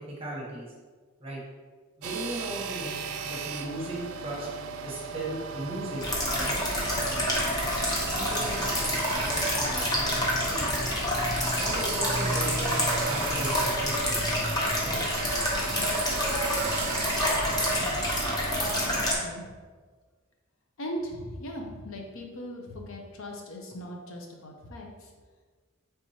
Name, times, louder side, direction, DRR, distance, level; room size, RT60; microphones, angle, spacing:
voice 1, 0.1-0.7 1.2-1.4 2.0-3.0 3.2-4.5 4.8-6.5 8.1-10.7 11.6-14.2 14.7-15.0 15.7-15.9 17.8-17.9, right 1 dB, 25° right, -4 dB, 0.9 m, -37 dB
sound 1, 2.0-19.0, right 5 dB, 75° right, 0.3 m, -37 dB
sound 2, 6.0-19.2, equal, 20° left, 0.7 m, -27 dB
voice 2, 18.6-19.5 20.8-24.9, equal, 65° left, 1 dB, 0.6 m, -39 dB
4.5 x 3.4 x 2.8 m, 1.4 s
head